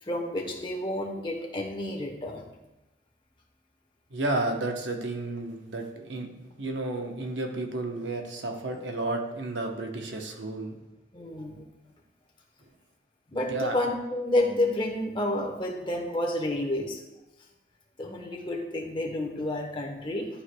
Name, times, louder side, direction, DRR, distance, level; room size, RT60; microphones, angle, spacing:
voice 1, 0.0-2.5 11.1-11.7 13.3-17.0 18.0-20.3, left 1 dB, 25° left, 0 dB, 1.0 m, -30 dB
voice 2, 4.1-10.8 13.5-13.8, right 2 dB, 80° right, 3 dB, 0.9 m, -32 dB
11.5 x 4.8 x 2.2 m, 1.0 s
head